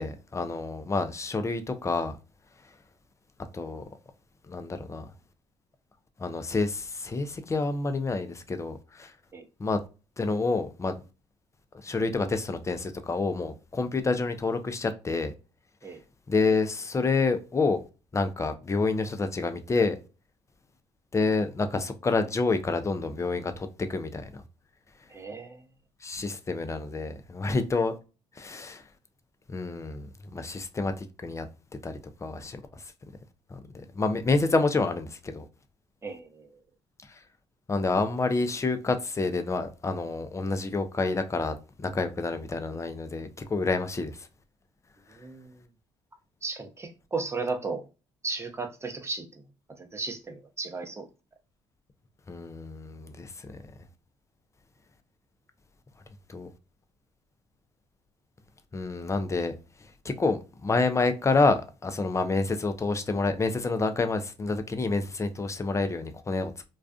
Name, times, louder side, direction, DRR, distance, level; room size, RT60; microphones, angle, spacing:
voice 1, 0.0-2.1 3.5-3.8 4.5-5.1 6.2-9.1 9.6-9.8 10.2-11.0 11.8-15.3 16.3-17.8 18.1-20.0 21.1-24.4 26.0-27.9 28.4-28.8 29.5-31.5 31.8-31.9 32.2-32.6 33.5-33.6 33.9-35.4 37.7-44.1 52.3-53.6 56.3-56.5 58.7-59.5 60.0-66.5, left 3 dB, 25° left, 0.5 m, -28 dB
voice 2, 25.1-25.6 36.0-36.5 45.1-45.5 46.4-47.8 48.2-49.2 49.9-51.1, right 4 dB, 20° right, 0.7 m, -34 dB
2.4 x 2.3 x 2.3 m
hypercardioid pair, 55°, 13 cm